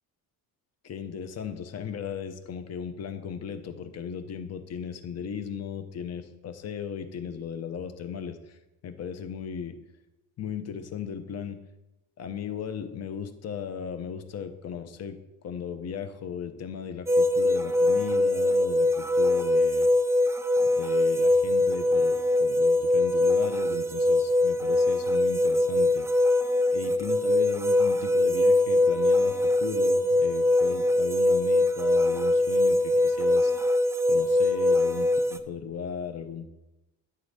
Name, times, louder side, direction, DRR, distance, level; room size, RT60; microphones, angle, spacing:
voice 1, 0.8-9.8 10.4-11.6 12.2-19.9 20.7-26.1 26.7-33.5 34.1-36.5, left 7 dB, 45° left, 9 dB, 0.8 m, -36 dB
sound 1, 17.1-35.4, left 1 dB, 10° right, 0.4 m, -23 dB
9.6 x 3.8 x 6.6 m, 0.96 s
cardioid pair, 120°, 37 cm